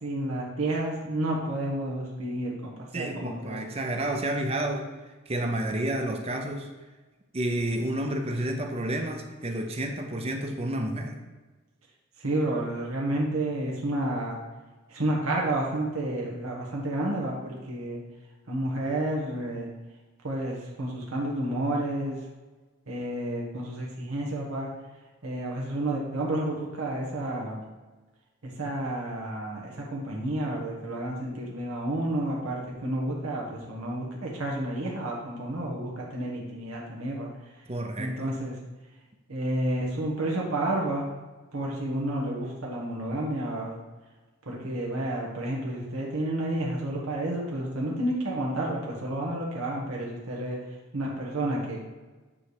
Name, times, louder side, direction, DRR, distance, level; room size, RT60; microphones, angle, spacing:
voice 1, 0.0-3.6 12.2-14.4 14.9-18.0 18.5-19.7 20.2-22.2 22.9-24.7 25.2-27.6 28.4-37.3 38.0-38.5 39.3-41.1 41.5-43.8 44.5-50.6 50.9-51.8, right 1 dB, 85° right, -3 dB, 1.4 m, -30 dB
voice 2, 2.9-4.9 5.3-6.7 7.3-11.2 37.7-38.4, right 1 dB, 30° right, 4 dB, 0.6 m, -30 dB
9.6 x 3.3 x 4.8 m, 1.2 s
head